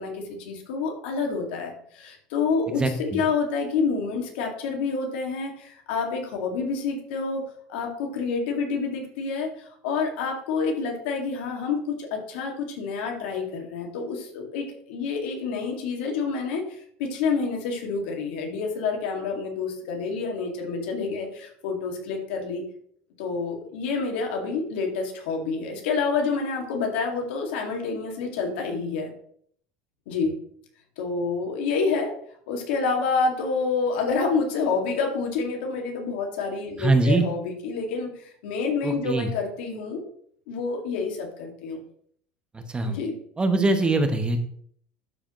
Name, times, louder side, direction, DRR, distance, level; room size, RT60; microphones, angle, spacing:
voice 1, 0.0-7.4 7.7-22.6 23.2-29.1 30.1-30.3 31.0-32.1 32.5-40.0 40.5-41.8 42.8-43.2, left 4 dB, 80° left, 2 dB, 2.0 m, -28 dB
voice 2, 2.8-3.2 36.8-37.3 38.8-39.3 42.5-43.0 43.4-44.4, right 2 dB, 15° right, 7 dB, 0.9 m, -22 dB
12.0 x 4.9 x 3.1 m, 0.63 s
supercardioid pair, 120°, 6 cm